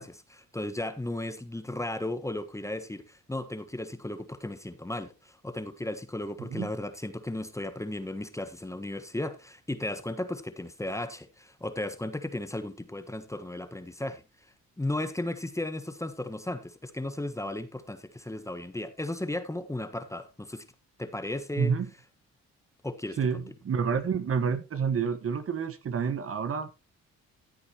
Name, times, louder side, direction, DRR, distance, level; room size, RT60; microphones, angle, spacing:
voice 1, 0.0-14.2 14.8-20.6 21.0-21.7 22.8-23.4, left 1 dB, 10° left, 1.3 m, -35 dB
voice 2, 6.4-6.7 21.6-21.9 23.2-26.7, right 6 dB, 50° right, 1.3 m, -29 dB
14.5 x 8.4 x 2.9 m
cardioid pair, 90°, 30 cm